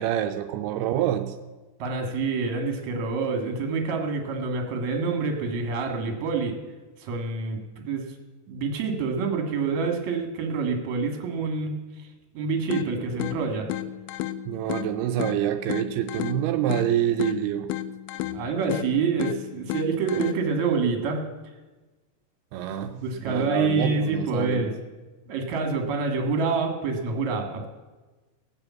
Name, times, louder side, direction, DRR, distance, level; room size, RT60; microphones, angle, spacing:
voice 1, 0.0-1.3 14.5-17.7 22.5-23.0 23.2-24.7, right 11 dB, 85° right, 6 dB, 2.6 m, -26 dB
voice 2, 1.8-6.6 7.0-8.0 8.5-11.7 12.3-13.7 18.1-21.2 22.8-24.7 25.3-27.7, right 4 dB, 55° right, 4 dB, 2.7 m, -27 dB
sound 1, 12.7-20.7, left 13 dB, 85° left, 2.0 m, -34 dB
18.5 x 6.9 x 8.2 m, 1.2 s
omnidirectional pair, 4.6 m